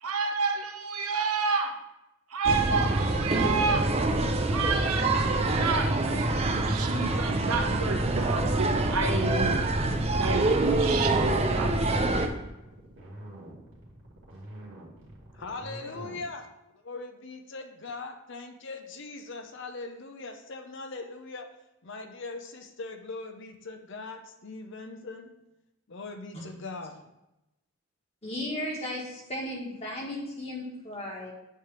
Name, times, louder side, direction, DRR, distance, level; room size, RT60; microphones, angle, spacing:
voice 1, 0.0-1.8 2.3-3.9 4.5-9.6 10.2-11.8, right 4 dB, 85° right, 5 dB, 0.9 m, -30 dB
sound 1, 2.5-12.3, right 2 dB, 30° right, 0.5 m, -26 dB
sound 2, 6.8-16.3, right 1 dB, 60° right, 2.1 m, -44 dB
voice 2, 15.3-16.5 16.8-21.5 21.8-25.3 25.9-27.0, left 3 dB, 55° left, 6 dB, 0.7 m, -40 dB
voice 3, 28.2-31.3, left 1 dB, 30° left, -2 dB, 1.6 m, -35 dB
8.3 x 3.4 x 6.0 m, 0.93 s
head